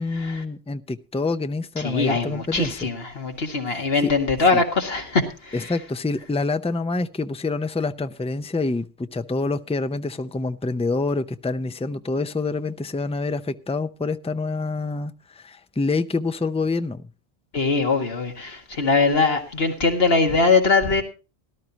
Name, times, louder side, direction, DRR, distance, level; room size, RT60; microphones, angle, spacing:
voice 1, 0.0-2.9 3.7-3.8 4.5-4.6 5.5-17.1, left 3 dB, 10° left, 10 dB, 0.4 m, -27 dB
voice 2, 1.8-5.7 17.5-21.0, left 4 dB, 70° left, 4 dB, 2.0 m, -22 dB
18.0 x 12.5 x 2.9 m, 0.31 s
omnidirectional pair, 1.1 m